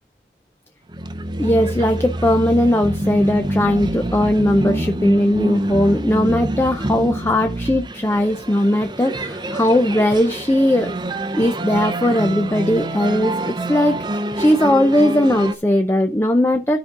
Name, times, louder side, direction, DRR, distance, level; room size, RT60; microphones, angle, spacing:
sound 1, 0.9-15.5, right 1 dB, 25° right, 0.6 m, -26 dB
voice 1, 1.4-10.9 11.4-16.8, left 1 dB, 15° left, 0.5 m, -18 dB
13.5 x 5.2 x 3.7 m
head